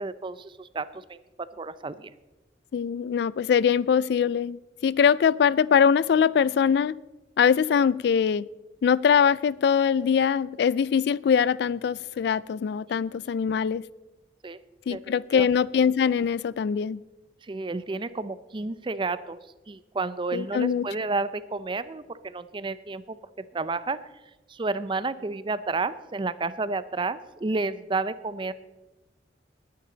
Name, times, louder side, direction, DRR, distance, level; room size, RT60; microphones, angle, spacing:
voice 1, 0.0-2.1 14.4-14.6 14.9-15.5 17.4-19.4 19.7-24.0 24.5-28.5, right 3 dB, 25° right, 0.5 m, -31 dB
voice 2, 2.7-4.6 4.8-6.9 7.4-8.5 8.8-13.8 14.9-17.0 20.3-20.9, left 7 dB, 60° left, 0.3 m, -22 dB
20.0 x 9.5 x 3.9 m
head